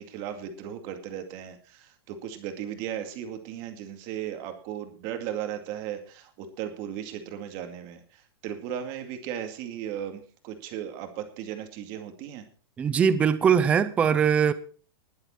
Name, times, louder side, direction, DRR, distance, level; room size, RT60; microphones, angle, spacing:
voice 1, 0.0-12.4, right 10 dB, 30° right, 2.3 m, -36 dB
voice 2, 12.8-14.5, right 7 dB, 10° right, 0.5 m, -21 dB
20.0 x 7.9 x 4.4 m
supercardioid pair, 175°, 13 cm